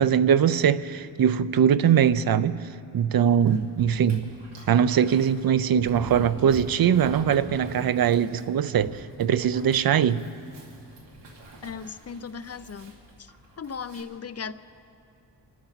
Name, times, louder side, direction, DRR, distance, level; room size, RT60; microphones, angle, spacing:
voice 1, 0.0-2.6 2.9-4.2 4.7-10.2, right 8 dB, 55° right, 0.6 m, -21 dB
Dog, 3.5-14.0, right 1 dB, 75° right, 2.7 m, -44 dB
voice 2, 11.6-12.9 13.2-13.3 13.6-14.5, left 6 dB, 35° left, 0.5 m, -37 dB
27.0 x 13.0 x 4.1 m
wide cardioid pair, 125°, 42 cm